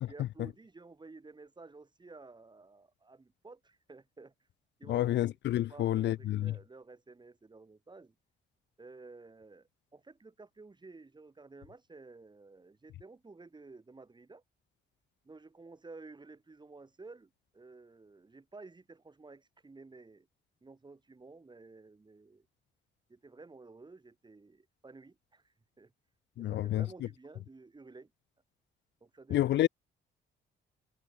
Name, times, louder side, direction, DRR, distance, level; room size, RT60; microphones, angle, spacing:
voice 1, 0.0-4.3 4.8-5.4 5.7-8.1 8.8-14.4 15.2-20.3 20.6-22.5 23.1-25.9 26.4-28.1 29.0-29.7, right 3 dB, 20° right, 3.4 m, -53 dB
voice 2, 4.9-6.5 26.4-26.8 29.3-29.7, left 13 dB, 65° left, 0.5 m, -29 dB
cardioid pair, 90°, 20 cm